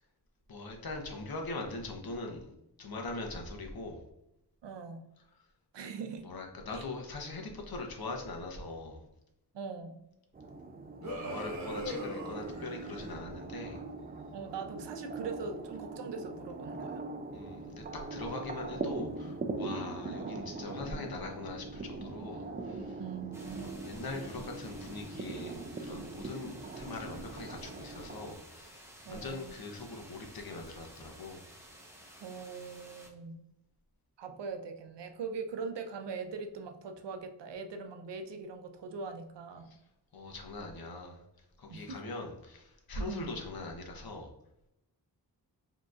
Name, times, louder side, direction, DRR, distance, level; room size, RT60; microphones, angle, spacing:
voice 1, 0.5-2.5 2.8-4.0 6.2-9.0 11.0-13.8 17.3-17.8 18.1-23.0 23.6-31.4 39.7-39.8 40.1-41.2 41.6-44.3, left 2 dB, 60° left, 2 dB, 0.9 m, -42 dB
voice 2, 4.6-5.1 5.7-6.3 6.7-6.8 9.5-10.0 14.3-17.0 23.0-23.8 29.0-29.7 32.2-33.5 34.2-39.7 41.7-42.0 43.0-43.3, right 5 dB, 90° right, 6 dB, 0.6 m, -41 dB
sound 1, 10.3-28.3, right 3 dB, 25° right, 0.3 m, -41 dB
sound 2, 11.0-13.1, equal, 40° right, 1.3 m, -40 dB
sound 3, 23.3-33.1, right 1 dB, 5° right, 0.8 m, -54 dB
4.9 x 2.9 x 2.4 m, 0.85 s
wide cardioid pair, 70°, 41 cm